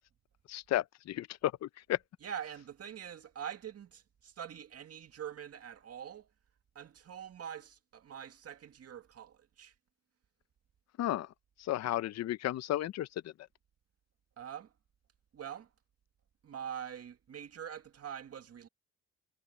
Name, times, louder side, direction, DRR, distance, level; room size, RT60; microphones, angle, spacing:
voice 1, 0.5-2.0 11.0-11.3 11.6-13.3, left 13 dB, 60° left, 0.6 m, -33 dB
voice 2, 2.2-6.3 6.8-9.7 14.4-14.7 15.3-15.7 16.4-18.7, right 8 dB, 55° right, 2.0 m, -44 dB
cardioid pair, 90°, 30 cm